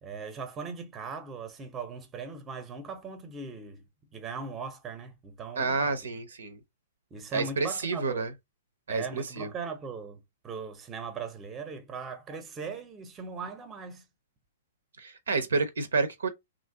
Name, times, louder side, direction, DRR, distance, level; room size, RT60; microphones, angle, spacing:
voice 1, 0.0-3.8 4.1-6.0 7.1-8.3 8.9-14.1, right 5 dB, 20° right, 0.7 m, -39 dB
voice 2, 5.6-6.6 7.3-8.3 8.9-9.5 15.0-16.3, right 4 dB, 70° right, 0.6 m, -29 dB
3.0 x 2.5 x 2.7 m
figure-of-eight pair, 110°, 0 cm